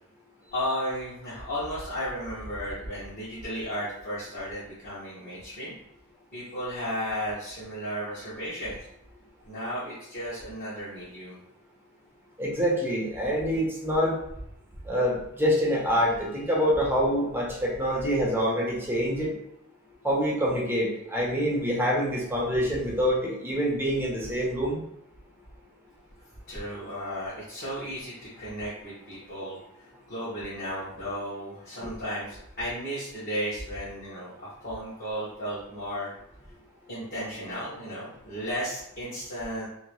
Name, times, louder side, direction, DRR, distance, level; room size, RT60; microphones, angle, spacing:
voice 1, 0.5-5.7 6.3-8.8 9.4-11.4 26.5-36.1 36.9-39.7, equal, 45° left, -11 dB, 1.3 m, -34 dB
voice 2, 12.4-14.2 14.9-19.3 20.0-24.8, equal, 10° right, -4 dB, 0.9 m, -26 dB
3.0 x 2.9 x 3.1 m, 0.79 s
head